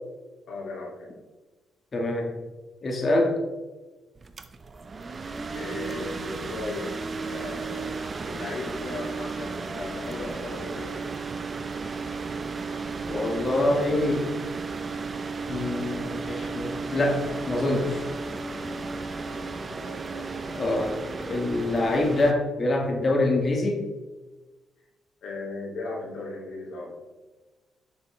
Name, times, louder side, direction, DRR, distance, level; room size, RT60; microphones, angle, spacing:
voice 1, 0.5-1.1 5.5-11.0 19.2-20.8 25.2-26.9, left 2 dB, 65° left, -3 dB, 2.4 m, -37 dB
voice 2, 1.9-2.4 2.8-3.4 13.0-14.3 15.5-18.0 20.5-21.0 21.3-23.8, left 2 dB, 40° left, 1 dB, 1.6 m, -25 dB
sound 1, 4.1-22.3, right 4 dB, 35° right, 0.5 m, -34 dB
7.0 x 6.5 x 3.2 m, 1.2 s
cardioid pair, 90°, 0 cm